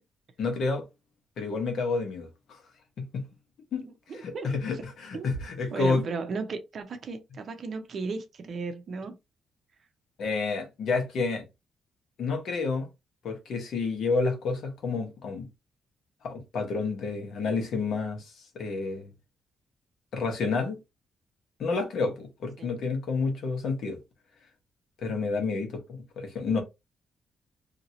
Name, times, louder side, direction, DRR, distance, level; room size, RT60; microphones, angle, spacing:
voice 1, 0.4-0.8 1.4-2.6 3.0-3.3 3.7-3.9 4.2-6.0 10.2-11.4 12.2-12.9 13.2-15.5 16.2-18.2 18.5-19.1 20.1-20.8 21.6-24.0 25.0-26.6, left 4 dB, 70° left, 1.2 m, -29 dB
voice 2, 3.8-4.9 5.1-5.3 5.7-9.2 22.6-22.8, right 4 dB, 55° right, 0.7 m, -36 dB
2.9 x 2.8 x 2.7 m
cardioid pair, 105°, 0 cm